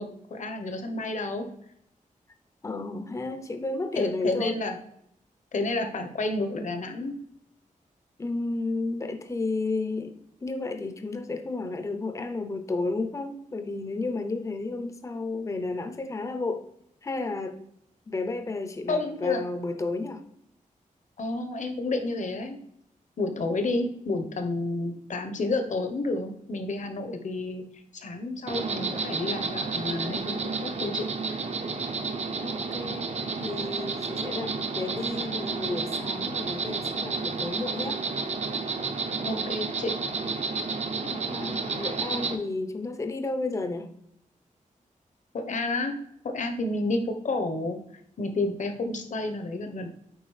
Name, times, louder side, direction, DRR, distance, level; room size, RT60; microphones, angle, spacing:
voice 1, 0.0-1.5 3.9-4.8 5.5-7.2 18.9-19.4 21.2-22.6 23.2-27.6 27.9-31.4 39.2-39.9 45.3-46.0 46.2-47.8 48.2-49.9, left 2 dB, 60° left, 6 dB, 0.9 m, -30 dB
voice 2, 2.6-4.6 8.2-16.6 17.0-17.6 18.1-20.2 32.4-38.0 40.9-43.9, left 3 dB, 20° left, 8 dB, 0.5 m, -32 dB
Insect, 28.5-42.3, right 4 dB, 50° right, 0.6 m, -31 dB
8.0 x 4.7 x 3.2 m, 0.73 s
wide cardioid pair, 155°, 14 cm